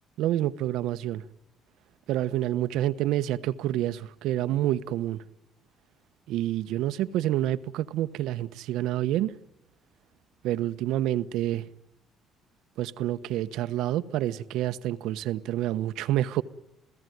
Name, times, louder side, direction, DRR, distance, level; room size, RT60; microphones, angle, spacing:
voice 1, 0.2-1.2 2.1-5.2 6.3-9.3 10.4-11.7 12.8-16.4, right 13 dB, 80° right, 1.0 m, -28 dB
28.5 x 16.5 x 9.4 m
cardioid pair, 125°, 0 cm